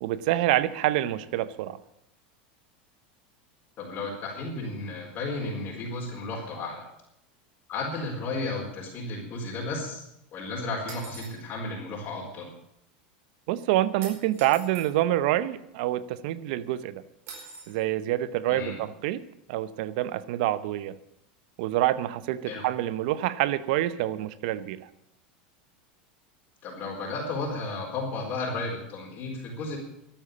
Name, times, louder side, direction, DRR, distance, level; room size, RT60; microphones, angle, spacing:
voice 1, 0.0-1.8 13.5-17.0 17.7-19.2 19.5-21.0 21.6-24.9, right 14 dB, 70° right, 16 dB, 0.8 m, -27 dB
voice 2, 3.8-6.9 7.7-10.0 10.3-12.5 18.5-18.8 22.5-22.6 26.6-29.8, left 3 dB, 45° left, -3 dB, 4.4 m, -33 dB
sound 1, 10.9-11.4 14.0-14.9 17.3-17.8, right 4 dB, 50° right, 4.9 m, -43 dB
13.0 x 8.7 x 8.5 m, 0.78 s
supercardioid pair, 110°, 5 cm